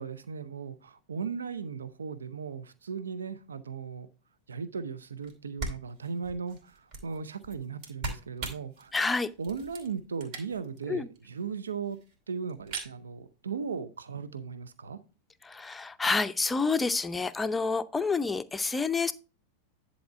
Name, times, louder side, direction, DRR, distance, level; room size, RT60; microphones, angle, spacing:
voice 1, 0.0-4.1 4.5-8.9 9.4-12.0 12.3-15.0, right 5 dB, 70° right, 0.6 m, -37 dB
sound 1, 5.2-5.3 5.6-10.8 11.2-11.3 11.4-11.5 11.7-12.1 12.5-12.9, right 3 dB, 45° right, 3.0 m, -40 dB
voice 2, 8.9-9.3 10.9-11.1 15.4-19.1, left 4 dB, 10° left, 0.6 m, -28 dB
10.5 x 4.2 x 4.7 m
figure-of-eight pair, 90°, 0 cm